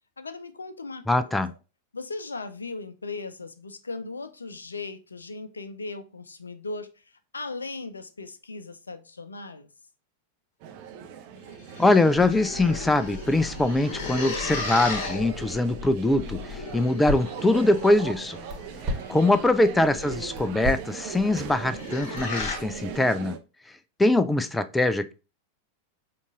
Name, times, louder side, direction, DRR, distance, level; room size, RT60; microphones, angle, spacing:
voice 1, 0.2-1.6 1.9-9.7 19.0-19.3, left 3 dB, 75° left, 0.4 m, -38 dB
voice 2, 1.1-1.5 11.8-18.4 19.1-23.4 24.0-25.1, left 2 dB, 10° left, 0.3 m, -23 dB
sound 1, 10.6-23.4, right 8 dB, 45° right, 0.5 m, -40 dB
sound 2, 11.4-19.0 21.4-22.6, left 3 dB, 50° left, 1.2 m, -36 dB
Crackle, 12.1-23.0, left 2 dB, 20° right, 1.4 m, -38 dB
5.3 x 2.4 x 3.5 m
figure-of-eight pair, 90°, 0 cm